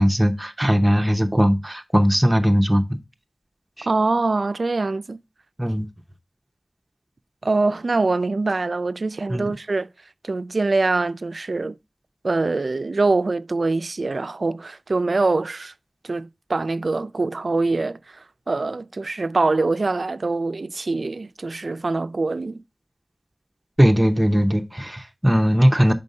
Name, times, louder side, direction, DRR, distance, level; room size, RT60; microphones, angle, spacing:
voice 1, 0.0-3.0 3.8-3.9 5.6-5.9 9.3-9.5 23.8-25.9, equal, 15° right, 0.7 m, -19 dB
voice 2, 3.9-5.2 7.4-9.9 10.2-11.8 12.2-15.7 16.0-22.6, right 3 dB, 65° right, 0.3 m, -24 dB
5.3 x 3.8 x 5.4 m
wide cardioid pair, 60°, 0 cm